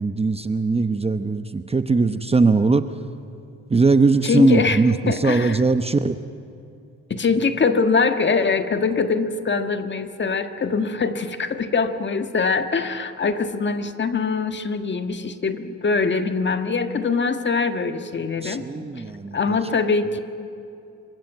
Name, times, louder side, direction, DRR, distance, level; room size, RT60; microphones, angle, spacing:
voice 1, 0.0-2.8 3.7-6.2 18.4-19.6, right 4 dB, 20° right, 10 dB, 0.9 m, -20 dB
voice 2, 4.2-5.6 7.1-18.7 19.3-20.2, left 4 dB, 40° left, 8 dB, 1.6 m, -23 dB
26.5 x 15.5 x 9.4 m, 2.6 s
cardioid pair, 90°, 30 cm